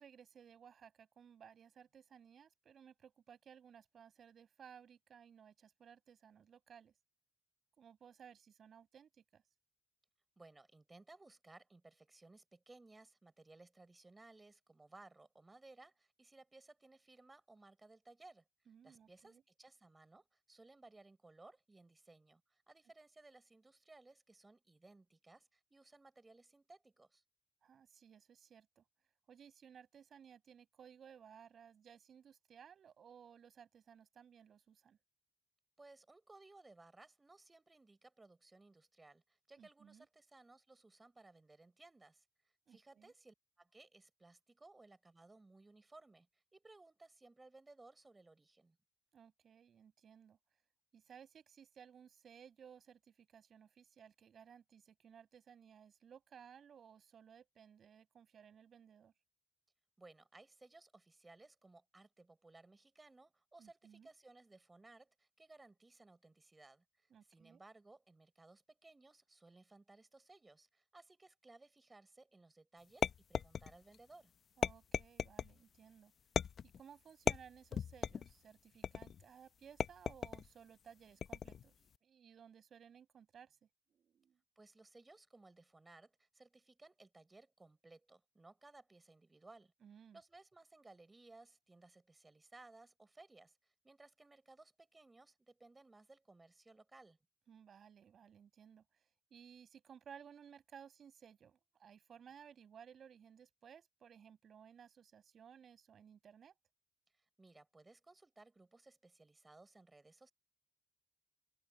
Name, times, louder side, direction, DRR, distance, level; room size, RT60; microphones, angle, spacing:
voice 1, 0.0-6.9 7.8-9.4 18.7-19.4 27.6-28.8 29.3-35.0 39.6-40.1 42.7-43.1 49.1-50.4 50.9-59.1 63.6-64.1 67.1-67.6 74.6-76.1 76.8-81.7 82.0-83.6 83.9-84.4 89.8-90.2 97.5-98.8 99.3-106.5, right 8 dB, 50° right, 6.1 m, -59 dB
voice 2, 10.4-18.4 18.8-27.2 35.8-42.2 42.7-48.8 60.0-74.3 84.6-89.7 90.1-97.2 107.1-110.3, right 2 dB, 15° right, 5.7 m, -61 dB
sound 1, 73.0-74.0 74.6-75.5 76.4-76.8 77.3-78.3 78.8-79.2 79.8-80.5 81.2-81.7, left 7 dB, 50° left, 0.6 m, -37 dB
cardioid pair, 125°, 0 cm